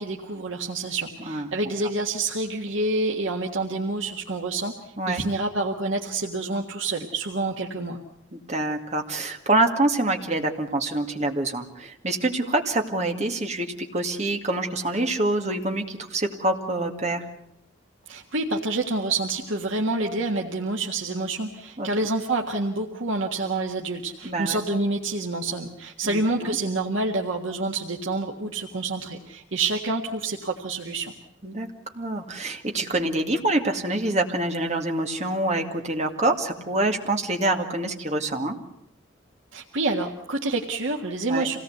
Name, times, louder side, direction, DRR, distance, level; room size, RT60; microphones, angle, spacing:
voice 1, 0.0-8.0 18.1-31.1 39.5-41.6, right 2 dB, 85° right, 0 dB, 1.8 m, -28 dB
voice 2, 8.3-17.3 21.8-21.9 24.2-24.6 26.0-26.6 31.4-31.7 31.9-38.6 41.3-41.5, right 2 dB, 35° right, 3 dB, 2.2 m, -26 dB
26.5 x 18.0 x 8.1 m, 0.83 s
head